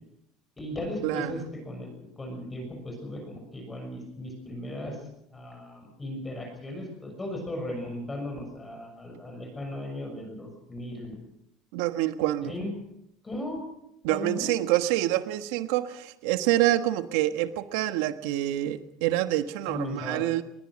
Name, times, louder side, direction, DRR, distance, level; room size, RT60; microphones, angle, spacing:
voice 1, 0.6-5.0 5.3-11.2 12.4-12.7 13.2-13.7 14.1-14.5 19.7-20.2, left 1 dB, 10° left, 3 dB, 6.4 m, -36 dB
voice 2, 11.7-12.5 14.0-20.4, right 14 dB, 75° right, 9 dB, 1.4 m, -26 dB
22.0 x 20.0 x 6.4 m, 0.80 s
cardioid pair, 155°, 0 cm